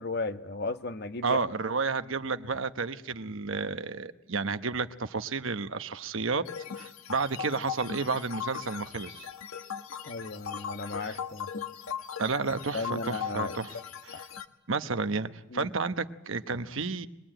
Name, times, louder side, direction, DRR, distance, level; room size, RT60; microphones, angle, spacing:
voice 1, 0.0-1.4 10.1-11.5 12.7-13.5 15.5-15.7, left 3 dB, 50° left, 1.1 m, -35 dB
voice 2, 1.2-6.4 6.8-9.3 11.0-11.2 12.2-14.3 14.7-17.1, right 4 dB, 70° right, 1.1 m, -31 dB
sound 1, 6.5-14.4, left 7 dB, 85° left, 1.4 m, -39 dB
24.0 x 21.0 x 9.0 m
head